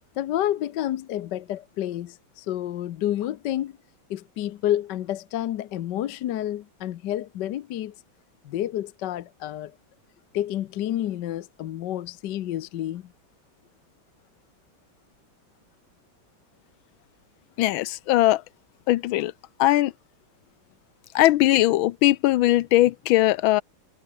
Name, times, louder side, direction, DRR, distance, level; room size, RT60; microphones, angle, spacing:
voice 1, 0.2-3.8 4.1-7.9 8.4-9.7 10.3-13.1, left 12 dB, 65° left, 1.3 m, -29 dB
voice 2, 17.6-18.4 18.9-19.3 19.6-19.9 21.1-23.6, left 16 dB, 85° left, 1.4 m, -20 dB
omnidirectional pair, 2.2 m